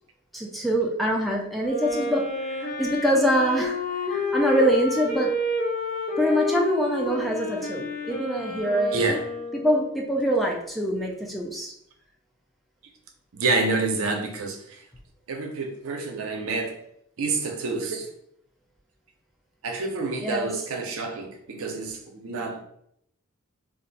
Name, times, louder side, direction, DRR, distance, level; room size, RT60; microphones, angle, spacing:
voice 1, 0.3-3.8 4.1-5.4 6.2-9.2 9.5-11.7 20.2-20.5, equal, ahead, 0.4 m, -24 dB
Wind instrument woodwind instrument, 1.5-9.9, left 2 dB, 40° left, 0.7 m, -30 dB
voice 2, 8.9-9.2 13.3-14.8 15.3-16.8 17.2-18.1 19.6-22.6, right 3 dB, 75° right, 0.6 m, -28 dB
2.5 x 2.1 x 3.9 m
head